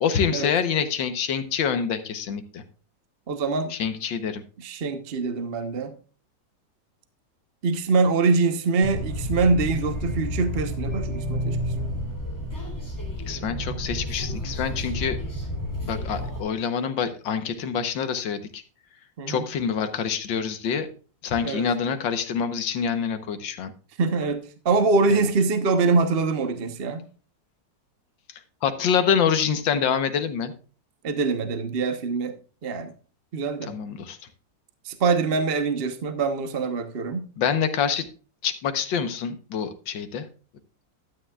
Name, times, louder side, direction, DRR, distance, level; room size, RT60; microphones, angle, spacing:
voice 1, 0.0-2.6 3.7-4.4 13.3-15.2 15.8-18.6 19.3-20.9 21.2-23.7 25.1-25.3 28.3-30.5 33.7-34.2 37.4-38.1 38.4-40.3, left 7 dB, 80° left, 9 dB, 1.8 m, -26 dB
voice 2, 3.3-3.7 4.6-6.0 7.6-12.0 19.2-19.4 21.4-21.7 24.0-27.0 31.0-32.4 32.6-32.9 33.3-33.7 34.8-37.3, right 4 dB, 40° right, 8 dB, 1.0 m, -24 dB
sound 1, 8.8-16.4, equal, 10° left, 2.9 m, -30 dB
12.5 x 9.5 x 2.4 m, 0.37 s
omnidirectional pair, 2.1 m